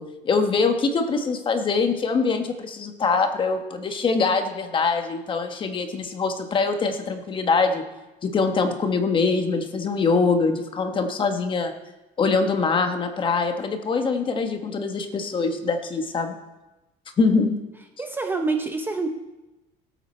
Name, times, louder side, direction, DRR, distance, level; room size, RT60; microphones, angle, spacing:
voice 1, 0.0-7.8 8.2-11.7 12.2-16.4 17.2-17.6, left 4 dB, 25° left, 6 dB, 1.1 m, -23 dB
voice 2, 18.0-19.1, right 3 dB, 10° right, 4 dB, 0.7 m, -26 dB
18.0 x 8.3 x 4.3 m, 1.0 s
cardioid pair, 155°, 19 cm